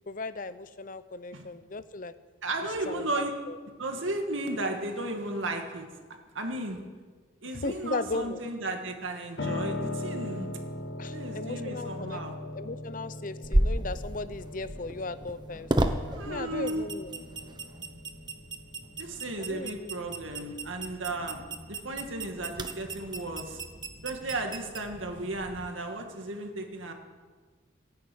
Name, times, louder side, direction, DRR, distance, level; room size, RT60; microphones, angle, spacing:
voice 1, 0.0-2.1 2.9-3.6 7.5-8.4 11.0-12.2 12.5-15.7 16.3-17.2 19.3-19.9, left 3 dB, 45° left, 13 dB, 0.7 m, -36 dB
voice 2, 2.4-3.3 3.8-5.9 6.3-6.8 7.4-10.5 11.1-12.3 16.1-16.8 19.0-23.6 24.0-26.9, right 2 dB, 80° right, 4 dB, 2.2 m, -34 dB
Piano, 9.4-19.3, left 2 dB, 65° left, 1.5 m, -39 dB
sound 1, 13.4-25.7, right 1 dB, 20° right, 0.9 m, -34 dB
14.5 x 10.5 x 8.7 m, 1.4 s
head